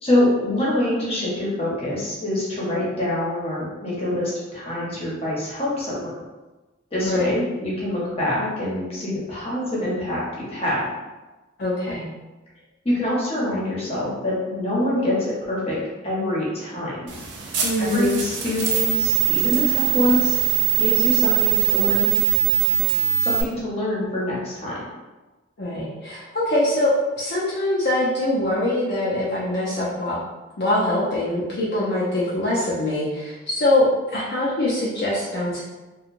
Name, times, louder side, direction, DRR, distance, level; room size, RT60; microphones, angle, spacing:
voice 1, 0.0-6.1 6.9-10.8 12.8-15.8 16.0-17.0 17.8-20.4 20.8-22.1 23.2-24.8, left 1 dB, 30° left, -7 dB, 0.9 m, -25 dB
voice 2, 11.6-12.0 17.6-18.2 25.6-30.2 30.6-33.9 34.1-35.6, left 1 dB, 55° left, -7 dB, 0.5 m, -23 dB
sound 1, 17.1-23.4, right 13 dB, 65° right, 0.5 m, -21 dB
2.9 x 2.3 x 2.5 m, 1.2 s
head